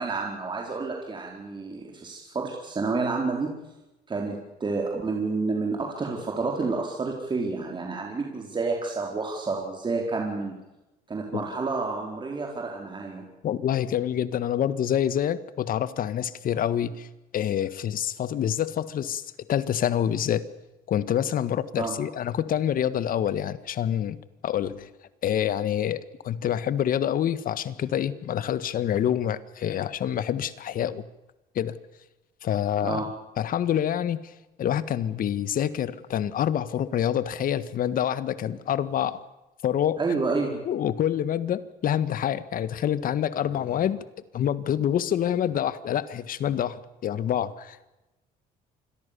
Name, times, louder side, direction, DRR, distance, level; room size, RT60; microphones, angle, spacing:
voice 1, 0.0-3.5 4.1-10.5 11.1-13.3 21.8-22.0 32.8-33.1 40.0-40.6, right 3 dB, 30° right, 0 dB, 4.7 m, -29 dB
voice 2, 13.4-17.1 17.3-20.4 20.9-24.2 24.4-24.9 25.2-31.0 31.5-31.8 32.4-33.0 33.4-34.3 34.6-39.2 39.6-40.0 40.6-44.0 44.3-47.8, left 10 dB, 55° left, 15 dB, 1.7 m, -27 dB
27.0 x 22.0 x 7.0 m, 1.0 s
cardioid pair, 110°, 17 cm